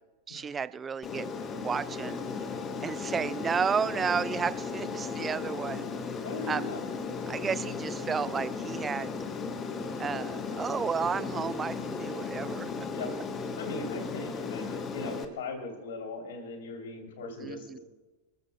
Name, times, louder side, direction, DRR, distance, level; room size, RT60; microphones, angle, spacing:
voice 1, 0.3-1.3 1.5-2.2 2.8-5.8 6.5-6.7 7.3-9.1 10.0-12.9 17.4-17.8, right 6 dB, 20° right, 17 dB, 0.4 m, -32 dB
Aircraft, 1.0-15.2, left 4 dB, 25° left, 1.1 m, -36 dB
voice 2, 6.2-6.8 12.9-13.1 13.6-17.8, left 3 dB, 60° left, 3 dB, 3.0 m, -39 dB
26.0 x 14.0 x 2.2 m, 1.2 s
figure-of-eight pair, 90°, 0 cm